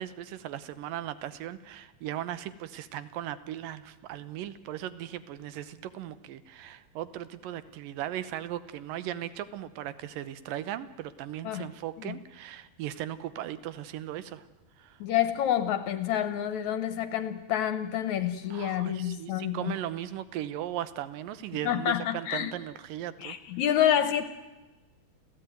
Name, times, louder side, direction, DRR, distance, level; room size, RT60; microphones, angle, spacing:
voice 1, 0.0-14.4 14.8-15.0 18.5-23.4, right 12 dB, 80° right, 14 dB, 2.6 m, -37 dB
voice 2, 15.0-19.7 21.6-22.5 23.2-24.2, left 10 dB, 70° left, 12 dB, 2.0 m, -28 dB
29.0 x 15.5 x 9.3 m, 1.1 s
omnidirectional pair, 4.0 m